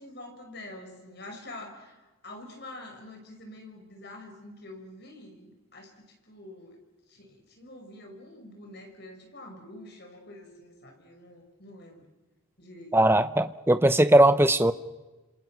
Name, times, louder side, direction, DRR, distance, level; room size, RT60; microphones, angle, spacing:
voice 1, 0.0-6.8 7.1-12.0 12.6-13.0, left 1 dB, 50° left, 3 dB, 5.9 m, -46 dB
voice 2, 12.9-14.7, right 1 dB, 10° right, 12 dB, 0.8 m, -19 dB
29.5 x 27.5 x 6.0 m, 1.2 s
head